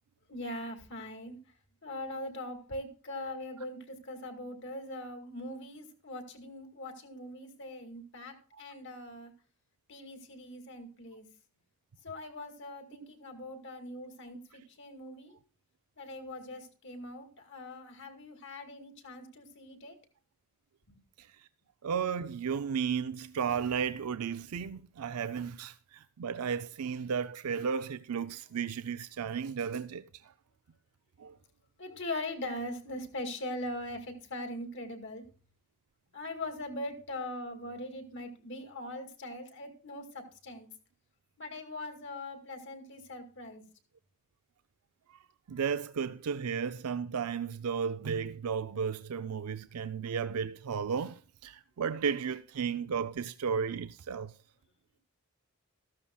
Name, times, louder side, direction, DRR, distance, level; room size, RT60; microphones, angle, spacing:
voice 1, 0.3-1.4 1.8-9.3 9.9-11.3 12.0-15.4 16.0-20.0 20.9-21.0 31.8-35.2 36.1-40.7 41.4-43.6, left 1 dB, 55° left, 2.1 m, -41 dB
voice 2, 21.8-30.1 31.2-31.3 45.5-54.3, right 6 dB, 90° right, 0.4 m, -34 dB
14.0 x 12.5 x 2.3 m
head